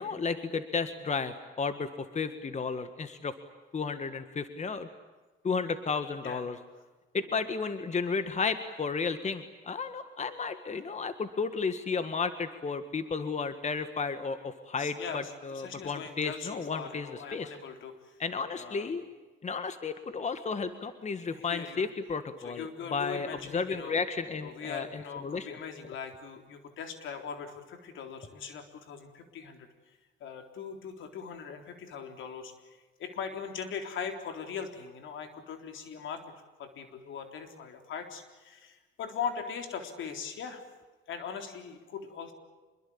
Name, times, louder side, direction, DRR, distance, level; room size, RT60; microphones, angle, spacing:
voice 1, 0.0-3.3 3.7-4.9 5.4-6.6 7.1-17.5 18.2-19.0 19.4-25.5, left 5 dB, 35° left, 10 dB, 1.8 m, -33 dB
voice 2, 14.8-18.2 18.5-18.9 21.3-21.9 22.4-24.0 24.4-36.2 36.6-40.6 41.1-42.3, left 6 dB, 75° left, 6 dB, 3.8 m, -40 dB
26.0 x 22.0 x 8.8 m, 1.2 s
cardioid pair, 90°, 20 cm